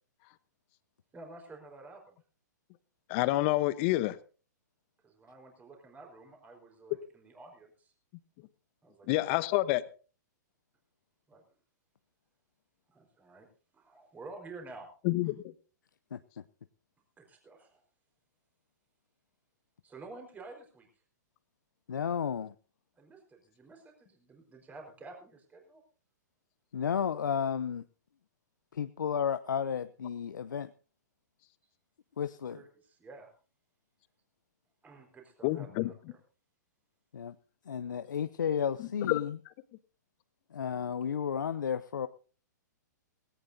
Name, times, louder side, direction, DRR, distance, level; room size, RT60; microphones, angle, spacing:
voice 1, 1.1-2.2 5.0-7.9 8.8-9.2 11.3-11.4 12.9-13.5 13.7-14.9 17.2-17.8 19.8-20.9 23.0-25.8 32.5-33.3 34.8-36.2, right 3 dB, 15° right, 4.5 m, -50 dB
voice 2, 3.1-4.2 9.1-9.8 15.0-15.4 35.4-35.9 39.0-39.2, left 18 dB, 40° left, 1.0 m, -28 dB
voice 3, 21.9-22.5 26.7-27.8 28.7-30.7 32.2-32.6 37.1-37.4 37.7-39.4 40.5-42.1, left 7 dB, 85° left, 0.7 m, -32 dB
18.5 x 17.0 x 2.7 m
hypercardioid pair, 125°, 10 cm